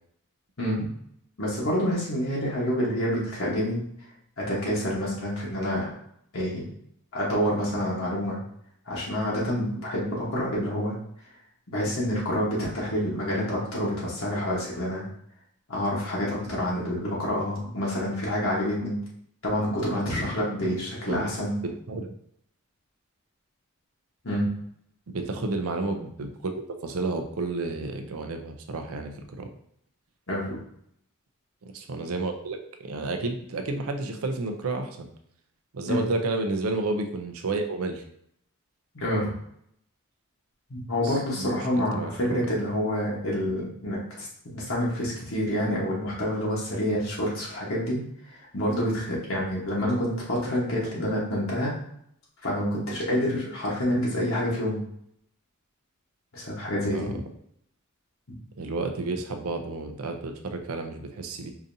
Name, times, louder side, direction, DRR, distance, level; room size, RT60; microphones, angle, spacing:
voice 1, 0.6-0.9 1.4-3.8 4.4-5.9 6.3-6.6 7.1-8.4 8.8-10.9 11.7-15.0 15.7-19.0 19.4-21.5 24.2-24.5 30.3-30.6 35.9-36.0 38.9-39.3 40.7-48.0 48.3-51.7 52.4-54.8 56.3-57.1, equal, 70° left, -6 dB, 1.1 m, -27 dB
voice 2, 21.6-22.1 25.1-26.5 26.8-29.5 31.6-35.1 35.7-38.0 41.0-42.6 56.9-57.2 58.6-61.5, right 3 dB, 85° right, 6 dB, 0.5 m, -31 dB
4.8 x 2.7 x 2.6 m, 0.70 s
head